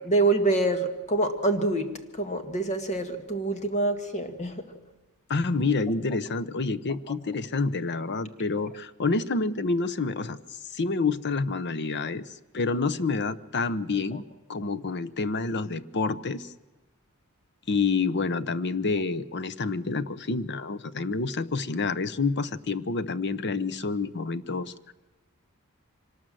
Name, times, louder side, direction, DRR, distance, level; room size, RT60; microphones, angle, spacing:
voice 1, 0.0-4.7 14.1-14.2, right 2 dB, 35° left, 7 dB, 1.9 m, -26 dB
voice 2, 5.3-10.4 10.6-14.2 14.5-16.5 17.7-24.9, left 4 dB, 50° left, 15 dB, 0.9 m, -28 dB
25.0 x 19.0 x 7.7 m, 1.1 s
head